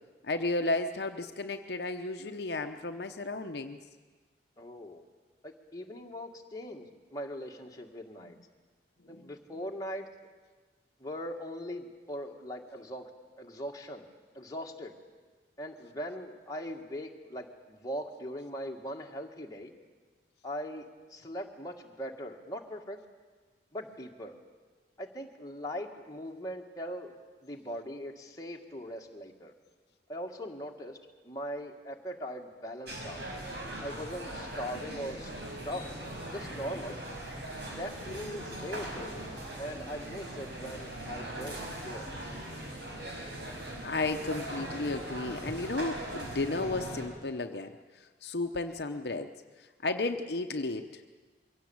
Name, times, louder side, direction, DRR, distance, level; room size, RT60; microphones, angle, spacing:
voice 1, 0.2-3.8 9.0-9.3 43.8-51.0, left 2 dB, 65° left, 6 dB, 0.9 m, -33 dB
voice 2, 4.6-5.0 5.4-8.4 9.1-10.1 11.0-13.1 13.4-14.1 14.3-15.0 15.6-19.7 20.4-23.0 23.7-24.3 25.0-29.5 30.1-31.0 31.2-33.3 33.8-35.3 35.6-35.9 36.3-37.0 37.8-39.3 39.6-42.1, equal, 20° left, 1 dB, 1.9 m, -40 dB
sound 1, 32.9-47.1, right 1 dB, 65° right, 4.8 m, -40 dB
23.0 x 16.5 x 8.8 m, 1.4 s
head